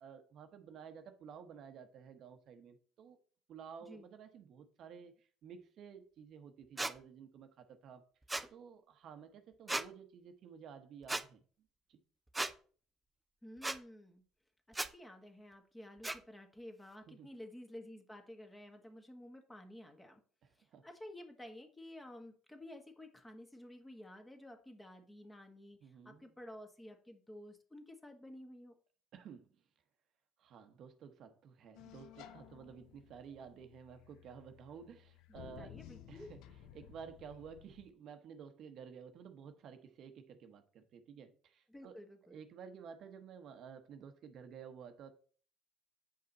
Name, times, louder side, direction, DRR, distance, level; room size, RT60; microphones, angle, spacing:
voice 1, 0.0-3.2 3.5-8.1 8.5-11.4 11.9-12.0 17.1-17.3 20.7-20.9 25.8-26.3 29.1-29.5 30.4-35.8 36.1-36.4 36.7-42.0 42.3-45.1, right 7 dB, 55° right, 1.0 m, -53 dB
sound 1, 6.8-6.9 8.3-8.5 9.7-9.9 11.1-11.2 12.3-12.5 13.6-13.8 14.7-14.9 16.0-16.2, right 2 dB, 10° right, 0.5 m, -36 dB
voice 2, 13.4-14.2 14.7-20.2 20.5-28.8 35.3-36.4 41.7-42.4, left 1 dB, 10° left, 1.5 m, -52 dB
sound 2, 31.7-37.9, left 12 dB, 75° left, 0.6 m, -56 dB
7.8 x 5.3 x 4.1 m
supercardioid pair, 95°, 0 cm